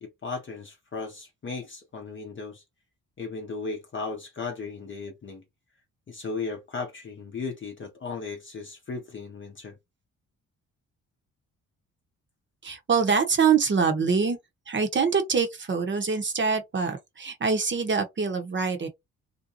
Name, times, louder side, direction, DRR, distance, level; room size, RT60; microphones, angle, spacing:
voice 1, 0.0-2.6 3.2-5.4 6.1-9.7, left 4 dB, 35° left, 0.7 m, -36 dB
voice 2, 12.6-14.4 14.7-18.9, right 5 dB, 35° right, 0.9 m, -24 dB
2.6 x 2.2 x 2.7 m
cardioid pair, 75°, 34 cm